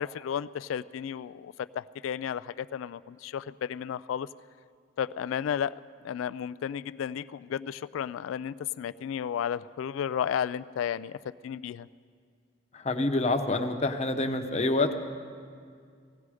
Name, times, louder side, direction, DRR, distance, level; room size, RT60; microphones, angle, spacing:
voice 1, 0.0-4.3 5.0-11.9, left 8 dB, 85° left, 16 dB, 0.3 m, -33 dB
voice 2, 12.7-14.9, left 2 dB, 35° left, 6 dB, 0.9 m, -27 dB
18.5 x 15.5 x 4.9 m, 2.2 s
head